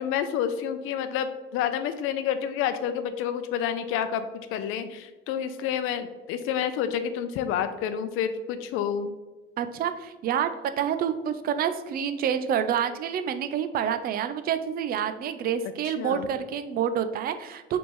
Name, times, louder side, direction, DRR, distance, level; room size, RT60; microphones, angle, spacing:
voice 1, 0.0-9.1 15.9-16.3, left 8 dB, 80° left, 10 dB, 0.6 m, -29 dB
voice 2, 9.6-17.8, right 8 dB, 45° right, 10 dB, 0.4 m, -28 dB
5.0 x 3.5 x 3.1 m, 1.2 s
cardioid pair, 145°, 21 cm